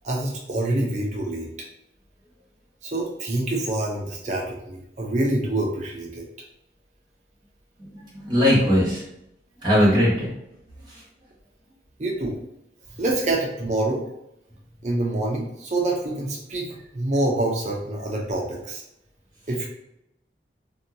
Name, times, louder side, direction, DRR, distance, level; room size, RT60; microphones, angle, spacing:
voice 1, 0.0-1.5 2.8-6.3 12.0-12.4 13.0-14.1 14.8-16.7 16.9-18.8 19.5-19.7, right 2 dB, 40° right, -1 dB, 0.5 m, -26 dB
voice 2, 7.8-9.0 9.6-10.3 10.9-11.0, equal, 25° right, -8 dB, 1.1 m, -20 dB
2.7 x 2.2 x 2.6 m, 0.80 s
head